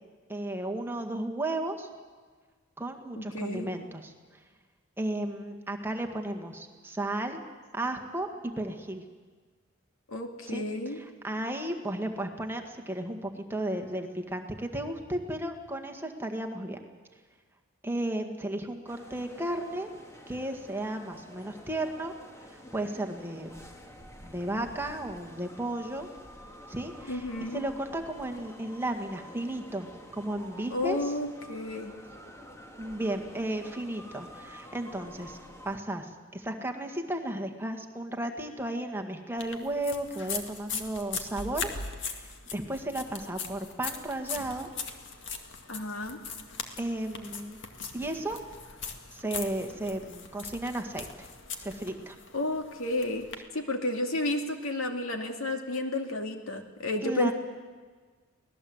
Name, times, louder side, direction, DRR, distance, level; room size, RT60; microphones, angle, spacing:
voice 1, 0.3-1.9 2.8-4.1 5.0-7.4 7.7-8.3 8.6-9.0 10.5-16.8 17.8-19.9 20.3-22.1 22.5-23.7 24.2-26.1 26.7-29.9 30.1-31.1 32.8-35.4 35.7-41.7 42.1-44.7 46.8-47.6 47.9-48.4 49.1-51.3 51.6-52.2 57.0-57.3, right 1 dB, 10° right, 3 dB, 1.8 m, -34 dB
voice 2, 3.2-3.7 10.1-11.0 27.1-27.6 30.7-31.9 45.7-46.2 52.3-53.3 53.5-57.3, left 2 dB, 90° left, 4 dB, 2.5 m, -31 dB
sound 1, 18.9-35.8, equal, 15° left, 2.0 m, -49 dB
sound 2, 39.4-53.3, left 5 dB, 60° left, 2.0 m, -40 dB
24.5 x 18.5 x 8.0 m, 1.5 s
head